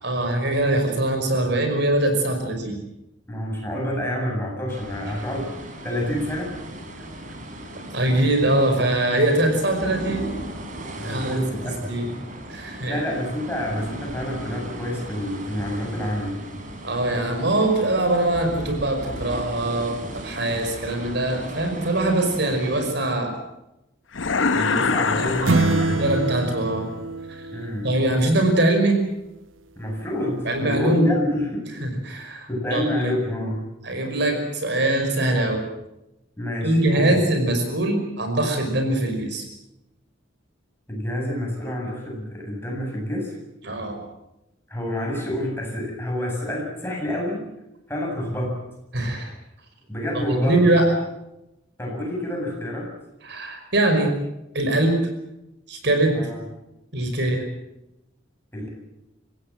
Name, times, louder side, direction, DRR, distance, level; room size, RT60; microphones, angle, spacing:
voice 1, 0.0-2.8 7.9-10.3 11.0-12.1 12.5-13.0 16.8-23.3 24.5-24.8 25.2-25.6 25.9-26.9 27.3-27.4 27.8-29.0 30.5-31.1 31.8-33.1 33.8-35.6 36.6-39.4 43.6-44.0 48.9-49.3 50.4-50.9 53.2-54.1 54.5-55.0 55.7-56.2 56.9-57.4, right 1 dB, 60° right, 4 dB, 5.4 m, -22 dB
voice 2, 3.3-5.5 5.8-6.5 11.0-12.0 12.9-16.4 24.5-26.2 27.5-28.0 29.8-31.8 32.5-33.6 36.4-37.1 40.9-43.3 44.7-47.5 47.9-48.6 49.9-50.7 51.8-52.9 56.1-56.4 58.5-58.7, left 1 dB, 10° left, -1 dB, 8.0 m, -28 dB
sound 1, 4.7-22.9, right 1 dB, 40° right, 4.0 m, -37 dB
sound 2, 24.1-26.5, left 4 dB, 75° left, 1.1 m, -24 dB
sound 3, 25.5-28.1, right 3 dB, 80° right, 1.0 m, -24 dB
29.5 x 16.5 x 7.7 m, 0.91 s
head